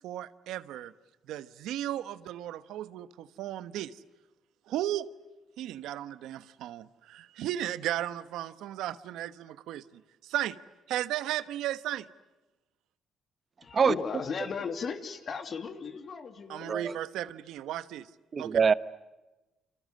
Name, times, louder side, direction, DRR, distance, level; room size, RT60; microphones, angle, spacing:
voice 1, 0.0-0.9 1.3-4.0 4.7-5.1 5.6-10.6 10.9-12.1 16.5-18.1 18.4-18.6, right 12 dB, 90° right, 1.1 m, -35 dB
voice 2, 13.6-16.7, left 5 dB, 50° left, 2.9 m, -36 dB
voice 3, 18.3-18.7, right 6 dB, 45° right, 1.1 m, -23 dB
29.0 x 27.0 x 7.7 m
cardioid pair, 90°, 0 cm